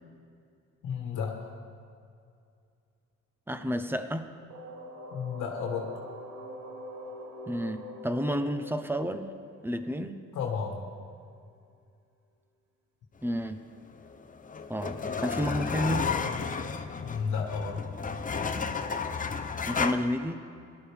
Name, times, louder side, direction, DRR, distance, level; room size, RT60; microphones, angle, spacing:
voice 1, 0.8-1.5 5.1-5.9 10.3-10.9 17.0-17.9, left 6 dB, 75° left, 1 dB, 1.4 m, -32 dB
voice 2, 3.5-4.3 7.5-9.3 9.6-10.2 13.2-13.7 14.7-16.1 19.7-20.4, equal, 5° right, 9 dB, 0.7 m, -31 dB
sound 1, 4.5-10.2, left 1 dB, 70° right, 2.2 m, -44 dB
sound 2, 14.0-19.9, left 5 dB, 25° left, 0.7 m, -32 dB
17.5 x 12.0 x 3.5 m, 2.4 s
cardioid pair, 90°, 30 cm